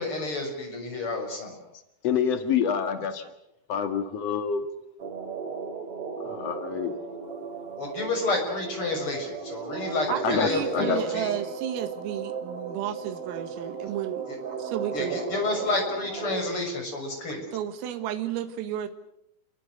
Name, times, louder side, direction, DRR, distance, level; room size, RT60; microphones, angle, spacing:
voice 1, 0.0-1.6 7.8-11.3 14.9-17.4, left 2 dB, 25° left, 3 dB, 7.2 m, -30 dB
voice 2, 2.0-3.2 3.7-4.6 6.2-6.9 10.2-11.0, left 7 dB, 80° left, 7 dB, 1.4 m, -27 dB
sound 1, 5.0-16.5, right 6 dB, 35° right, 2.9 m, -36 dB
voice 3, 10.1-14.3 14.6-15.2 17.5-18.9, right 11 dB, 80° right, 8 dB, 4.4 m, -32 dB
29.0 x 22.5 x 6.6 m, 0.81 s
omnidirectional pair, 5.9 m